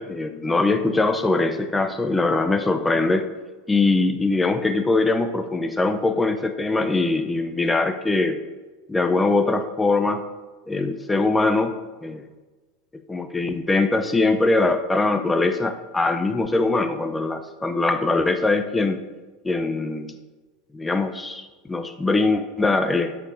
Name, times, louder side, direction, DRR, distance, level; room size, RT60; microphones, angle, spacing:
voice 1, 0.0-3.3 3.7-8.4 8.9-10.3 10.7-11.7 12.0-12.2 13.1-19.0 19.4-20.1 20.7-23.2, left 3 dB, 10° left, 7 dB, 0.6 m, -22 dB
13.0 x 6.0 x 2.7 m, 1.3 s
figure-of-eight pair, 80°, 0 cm